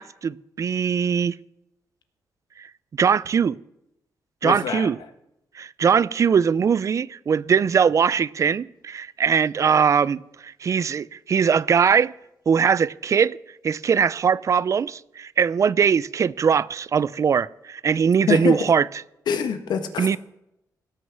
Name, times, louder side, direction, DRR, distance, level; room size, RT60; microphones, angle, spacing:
voice 1, 0.0-1.3 2.6-2.7 2.9-3.6 4.4-5.0 5.6-12.1 12.5-13.4 13.6-18.9 20.0-20.2, right 6 dB, 45° right, 0.4 m, -21 dB
voice 2, 4.4-4.9 18.3-18.6 19.3-20.2, left 7 dB, 85° left, 1.3 m, -25 dB
17.0 x 6.3 x 7.3 m
cardioid pair, 105°, 7 cm